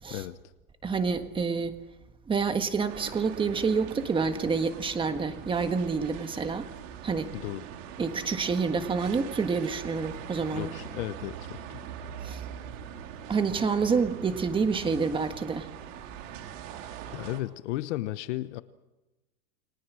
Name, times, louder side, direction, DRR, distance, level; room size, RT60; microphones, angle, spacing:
voice 1, 0.8-1.8 2.3-6.7 7.0-7.3 8.0-10.7 12.2-12.4 13.3-15.7, right 5 dB, 10° right, 8 dB, 1.5 m, -28 dB
sound 1, 2.9-17.4, right 9 dB, 55° right, 3.8 m, -42 dB
voice 2, 7.3-7.6 10.5-11.8 17.1-18.6, left 15 dB, 50° left, 13 dB, 1.1 m, -34 dB
30.0 x 21.5 x 6.3 m, 1.0 s
supercardioid pair, 155°, 46 cm